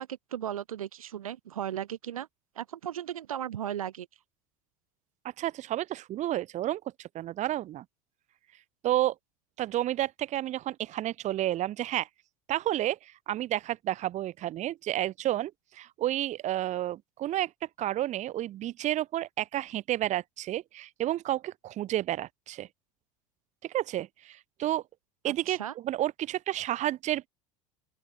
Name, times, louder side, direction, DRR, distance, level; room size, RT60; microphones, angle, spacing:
voice 1, 0.0-2.3 2.6-4.1 25.3-25.7, right 10 dB, 70° right, 2.5 m, -36 dB
voice 2, 5.4-7.8 8.8-9.1 9.6-12.1 12.5-17.5 17.8-22.7 23.6-24.8 25.2-27.3, right 13 dB, 40° right, 2.8 m, -31 dB
open air
figure-of-eight pair, 75°, 19 cm